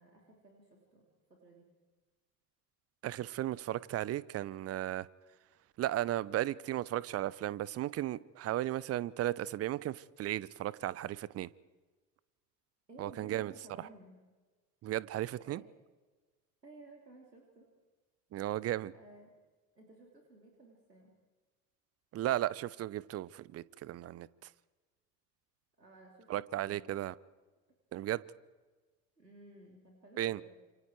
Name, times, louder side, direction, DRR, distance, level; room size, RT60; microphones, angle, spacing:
voice 1, 0.0-1.8 12.9-14.2 15.4-15.7 16.6-17.7 18.9-19.3 19.7-21.1 25.8-27.0 29.2-30.5, right 2 dB, 90° right, 0 dB, 3.3 m, -56 dB
voice 2, 3.0-5.1 5.8-11.5 13.0-13.5 14.8-15.6 18.3-18.9 22.1-24.3 26.3-27.1 27.9-28.2 30.2-30.4, right 14 dB, 30° right, 21 dB, 0.8 m, -35 dB
29.0 x 28.0 x 4.7 m, 1.3 s
figure-of-eight pair, 70°, 48 cm